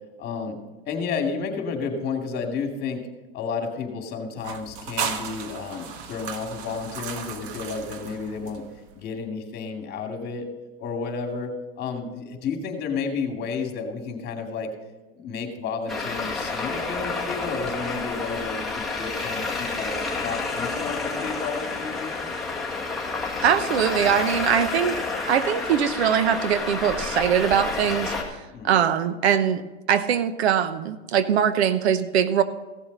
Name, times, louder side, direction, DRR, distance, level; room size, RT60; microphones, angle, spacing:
voice 1, 0.2-0.6 0.9-3.1 3.3-8.7 8.9-10.5 10.8-14.7 15.1-19.9 20.2-22.3 28.5-28.8, left 5 dB, 30° left, 3 dB, 2.5 m, -31 dB
sound 1, 4.4-8.9, right 6 dB, 55° right, 1.4 m, -35 dB
Traffic noise roadway noise, 15.9-28.2, left 3 dB, ahead, 1.8 m, -30 dB
voice 2, 23.4-29.6 29.9-32.4, right 8 dB, 80° right, 12 dB, 1.0 m, -22 dB
15.5 x 7.2 x 5.4 m, 1.1 s
supercardioid pair, 130°, 32 cm